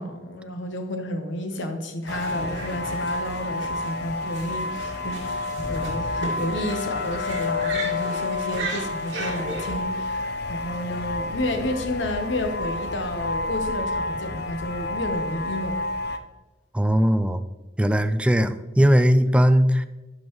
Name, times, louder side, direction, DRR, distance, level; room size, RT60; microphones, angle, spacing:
voice 1, 0.0-15.8, left 1 dB, 80° left, 6 dB, 1.0 m, -31 dB
sound 1, 2.1-16.2, left 3 dB, 60° left, 0.6 m, -30 dB
sound 2, 2.1-9.8, right 2 dB, 70° right, 2.1 m, -36 dB
voice 2, 16.7-17.5 17.8-19.9, equal, 5° right, 11 dB, 0.3 m, -19 dB
11.5 x 5.3 x 3.1 m, 1.1 s
head